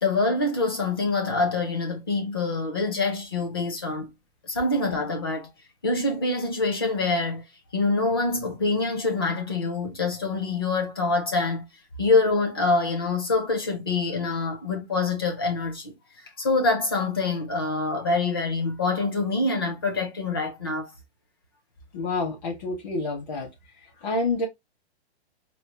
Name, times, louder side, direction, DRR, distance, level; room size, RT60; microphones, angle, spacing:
voice 1, 0.0-4.1 4.4-5.5 5.8-7.4 7.7-11.7 12.0-15.9 16.4-20.9, left 3 dB, 25° left, 0.5 m, -25 dB
voice 2, 21.9-23.5 24.0-24.5, left 2 dB, 40° left, 1.7 m, -28 dB
4.2 x 2.0 x 2.8 m
hypercardioid pair, 180°, 33 cm